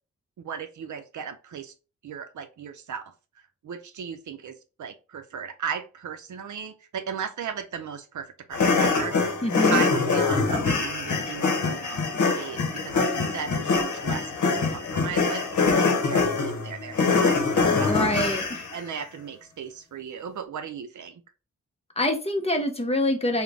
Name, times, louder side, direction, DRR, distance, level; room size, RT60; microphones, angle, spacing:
voice 1, 0.4-1.7 2.0-3.1 3.6-9.4 9.7-12.0 12.4-14.3 14.7-18.0 18.7-21.2, right 7 dB, 75° right, 0.5 m, -36 dB
sound 1, 8.5-18.8, left 4 dB, 80° left, 0.8 m, -24 dB
voice 2, 9.4-9.8 17.7-18.6 22.0-23.4, left 1 dB, 20° left, 0.6 m, -25 dB
3.8 x 2.1 x 3.2 m
wide cardioid pair, 125°, 30 cm